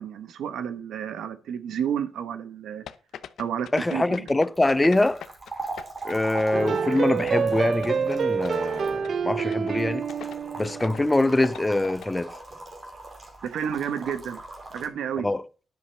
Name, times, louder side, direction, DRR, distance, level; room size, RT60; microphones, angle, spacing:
voice 1, 0.0-2.9 3.4-4.3 13.4-14.4 14.7-15.3, right 8 dB, 85° right, 1.1 m, -31 dB
sound 1, 2.9-5.5 5.8-8.2 8.4-8.8 9.0-9.1 9.4-9.7 10.1-10.4 10.6-11.0 11.3-12.1, left 9 dB, 80° left, 0.7 m, -40 dB
voice 2, 3.7-5.2 6.0-10.1 10.6-12.3 15.2-15.4, left 2 dB, 15° left, 0.5 m, -24 dB
sound 2, 4.5-14.9, right 2 dB, 35° right, 2.7 m, -40 dB
sound 3, 6.5-11.2, right 6 dB, 55° right, 0.6 m, -27 dB
11.0 x 5.7 x 7.0 m
cardioid pair, 95°, 0 cm